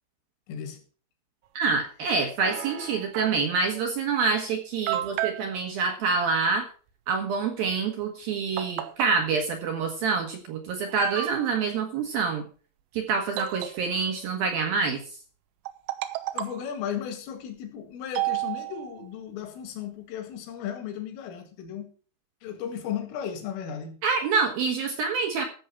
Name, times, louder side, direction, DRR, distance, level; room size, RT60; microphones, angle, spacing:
voice 1, 0.5-0.8 5.0-5.1 16.3-21.9 22.4-23.9, left 8 dB, 75° left, 4.5 m, -35 dB
voice 2, 1.6-6.7 7.1-12.4 12.9-15.0 24.0-25.5, right 5 dB, 65° right, 2.4 m, -26 dB
sound 1, 2.4-3.6 4.3-4.4 4.9-5.5 8.0-8.1 8.6-9.2 10.2-10.3 10.9-11.6 13.4-14.2 15.7-16.7 18.2-19.0, right 15 dB, 85° right, 3.6 m, -32 dB
14.0 x 7.3 x 5.8 m
omnidirectional pair, 6.0 m